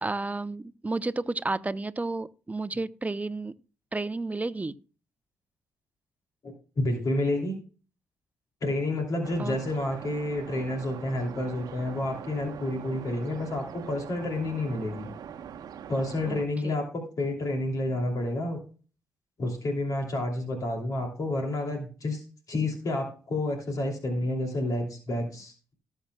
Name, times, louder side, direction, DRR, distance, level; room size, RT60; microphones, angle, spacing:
voice 1, 0.0-3.5 3.9-4.7 9.4-9.6 16.3-16.7, right 2 dB, 20° right, 0.8 m, -32 dB
voice 2, 6.4-7.5 8.6-15.1 15.9-18.6 19.4-22.2 22.5-25.7, left 1 dB, 50° left, 2.9 m, -30 dB
sound 1, 9.2-16.5, right 8 dB, 60° right, 1.0 m, -43 dB
18.5 x 7.4 x 2.3 m
hypercardioid pair, 45°, 7 cm